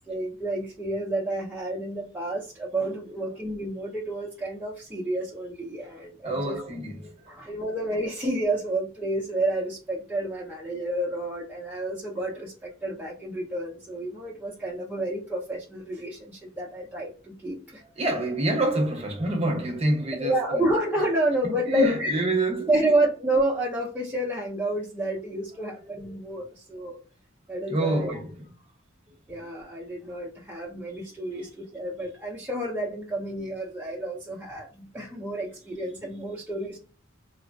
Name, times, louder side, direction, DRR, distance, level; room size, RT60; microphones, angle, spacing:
voice 1, 0.1-6.6 7.3-17.8 20.2-22.1 22.7-27.0 27.5-28.1 29.3-36.8, right 1 dB, 10° right, 0.5 m, -29 dB
voice 2, 6.2-7.4 18.0-20.7 21.5-22.9 26.1-26.2 27.7-28.4, right 1 dB, 30° right, 0.8 m, -27 dB
3.1 x 2.0 x 2.6 m
head